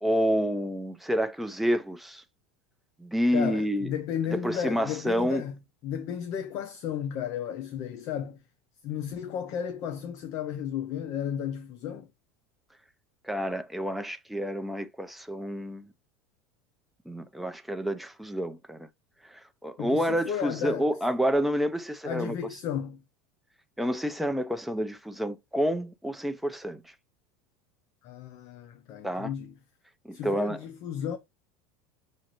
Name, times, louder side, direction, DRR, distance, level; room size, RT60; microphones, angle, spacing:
voice 1, 0.0-2.2 3.0-3.9 4.3-5.4 13.2-15.9 17.1-18.9 19.2-22.4 23.8-26.9 29.0-29.3 30.0-30.6, equal, ahead, 0.4 m, -29 dB
voice 2, 3.3-8.4 8.8-12.1 19.8-20.9 22.0-23.0 28.0-29.5 30.1-31.2, left 9 dB, 45° left, 0.6 m, -34 dB
6.4 x 2.5 x 2.9 m
supercardioid pair, 155°, 8 cm